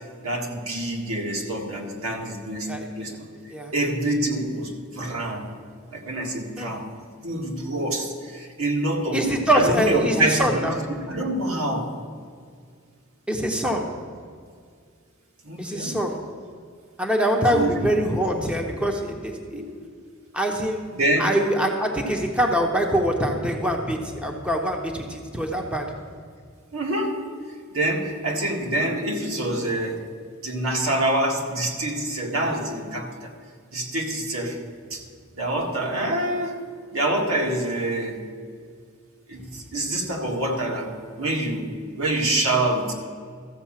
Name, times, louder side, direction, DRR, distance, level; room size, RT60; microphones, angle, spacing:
voice 1, 0.2-2.7 3.0-3.1 3.7-5.5 5.9-6.9 7.2-9.2 9.5-11.9 15.4-16.0 17.5-17.8 18.3-18.5 19.5-19.8 20.9-21.3 26.7-27.2 27.7-30.0 30.4-33.3 33.7-34.6 34.9-35.0 35.3-36.6 36.9-38.2 39.3-40.9 41.2-41.7 42.0-42.9, right 1 dB, 70° right, 0 dB, 1.9 m, -26 dB
voice 2, 9.1-10.8 13.3-13.9 15.6-16.2 17.0-19.6 20.3-20.8 21.2-25.8, right 1 dB, 5° right, 1 dB, 0.9 m, -24 dB
14.0 x 5.3 x 7.4 m, 2.1 s
head